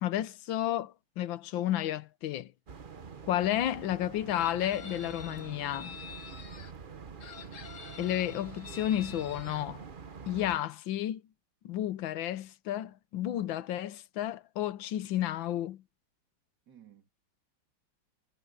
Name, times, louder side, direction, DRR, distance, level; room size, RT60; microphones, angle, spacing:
voice 1, 0.0-2.5 3.3-6.0 8.0-9.8 10.3-11.2 11.6-15.8, left 12 dB, 75° left, 1.5 m, -32 dB
sound 1, 2.7-10.6, right 6 dB, 40° right, 0.7 m, -46 dB
Chicken rooster, 4.3-6.7 7.2-9.6, left 7 dB, 45° left, 1.3 m, -47 dB
voice 2, 6.6-7.3 13.3-13.4 16.7-17.1, right 8 dB, 55° right, 3.1 m, -59 dB
omnidirectional pair, 2.2 m